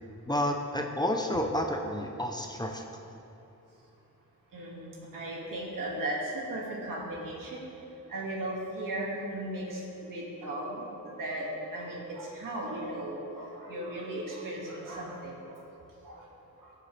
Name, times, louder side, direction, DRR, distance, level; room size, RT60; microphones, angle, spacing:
voice 1, 0.3-2.8, left 1 dB, 15° left, 2 dB, 0.6 m, -30 dB
voice 2, 4.5-7.6 8.1-15.6 16.0-16.3, right 1 dB, 80° right, -3 dB, 2.1 m, -36 dB
15.5 x 7.0 x 3.3 m, 2.9 s
wide cardioid pair, 160°, 32 cm